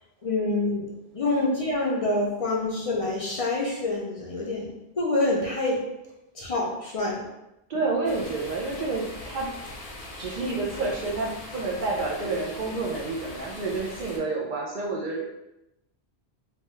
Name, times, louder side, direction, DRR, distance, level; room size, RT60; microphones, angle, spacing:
voice 1, 0.2-0.8 1.1-5.8 6.3-7.3, left 2 dB, 45° left, -3 dB, 0.5 m, -26 dB
voice 2, 7.7-9.5 10.2-15.2, right 3 dB, 55° right, -1 dB, 0.6 m, -29 dB
sound 1, 8.0-14.2, left 1 dB, 70° left, 0.9 m, -41 dB
2.9 x 2.2 x 3.0 m, 0.89 s
omnidirectional pair, 1.1 m